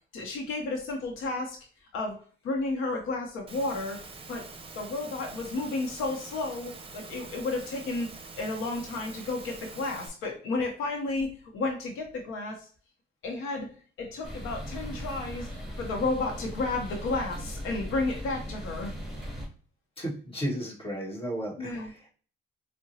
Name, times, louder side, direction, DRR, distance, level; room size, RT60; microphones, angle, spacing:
voice 1, 0.1-1.6 1.9-2.2 2.4-4.0 4.3-4.4 4.8-8.1 8.4-11.3 11.5-12.7 13.2-13.7 14.0-15.5 15.8-18.9 21.6-21.9, left 3 dB, 90° left, 2 dB, 0.7 m, -32 dB
Engine / Mechanisms, 3.5-10.1, right 4 dB, 30° right, 0.7 m, -45 dB
sound 1, 14.2-19.5, equal, ahead, 1.7 m, -38 dB
voice 2, 20.0-22.1, right 1 dB, 30° left, -3 dB, 1.6 m, -34 dB
4.6 x 2.1 x 2.7 m, 0.41 s
cardioid pair, 90°, 20 cm